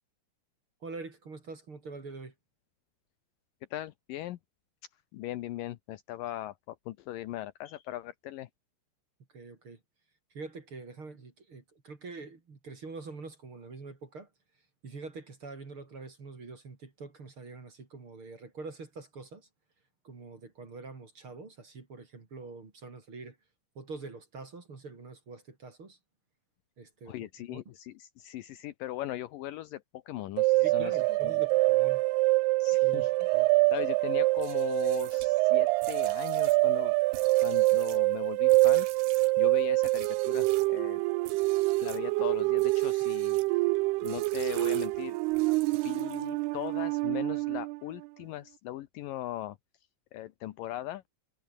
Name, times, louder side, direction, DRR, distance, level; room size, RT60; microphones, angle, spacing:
voice 1, 0.8-2.3 9.3-9.8 10.3-14.3 14.8-19.5 20.0-23.4 23.8-26.0 26.8-27.6 30.6-32.0 32.8-33.5, right 3 dB, 30° right, 3.7 m, -45 dB
voice 2, 3.7-4.4 5.1-8.5 27.1-31.3 32.6-33.4 33.7-36.9 37.4-38.9 39.4-41.0 41.8-43.4 44.0-45.2 45.7-49.6 50.1-51.0, left 14 dB, 80° left, 2.0 m, -39 dB
sound 1, 30.4-47.8, right 23 dB, 90° right, 2.2 m, -26 dB
sound 2, 34.3-40.8 41.2-42.1 42.5-43.5 44.0-46.5, right 14 dB, 70° right, 3.3 m, -48 dB
omnidirectional pair, 5.2 m